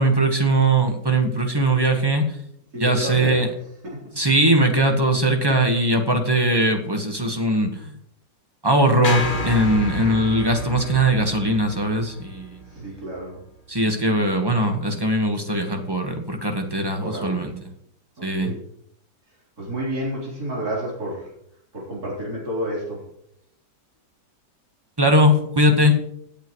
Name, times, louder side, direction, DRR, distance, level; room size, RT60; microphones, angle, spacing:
voice 1, 0.0-2.3 2.7-3.5 4.2-7.9 8.6-12.6 13.7-17.7 18.2-18.5 25.0-26.0, right 1 dB, 15° right, 4 dB, 1.2 m, -20 dB
voice 2, 2.7-3.4 5.4-5.6 12.7-13.4 17.0-17.3 18.2-18.6 19.6-21.3 21.7-23.0, right 1 dB, 60° right, -4 dB, 4.2 m, -30 dB
sound 1, 9.0-13.3, left 1 dB, 35° left, 1.2 m, -30 dB
16.5 x 8.6 x 3.1 m, 0.71 s
omnidirectional pair, 1.9 m